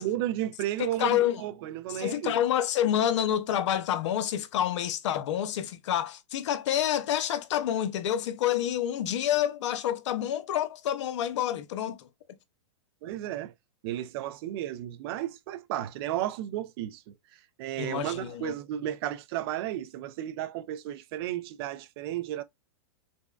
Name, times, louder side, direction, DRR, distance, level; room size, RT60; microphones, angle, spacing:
voice 1, 0.0-2.3 13.0-13.5 13.8-17.1 17.6-22.4, right 13 dB, 50° right, 0.6 m, -33 dB
voice 2, 0.8-1.4 1.9-12.1 17.8-18.5, left 11 dB, 65° left, 0.6 m, -28 dB
5.1 x 2.2 x 2.3 m
hypercardioid pair, 130°, 16 cm